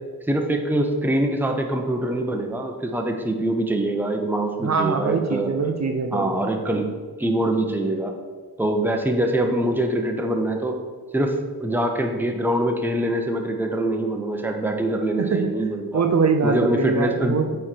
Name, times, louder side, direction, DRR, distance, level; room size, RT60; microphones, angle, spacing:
voice 1, 0.3-5.5 6.1-6.9 7.2-8.1 8.6-10.7 11.1-16.0 16.4-17.4, right 1 dB, 5° right, 4 dB, 0.7 m, -24 dB
voice 2, 4.6-6.3 15.2-15.5 15.9-17.6, right 4 dB, 45° right, 4 dB, 0.6 m, -23 dB
8.7 x 3.2 x 4.4 m, 1.5 s
wide cardioid pair, 85°, 38 cm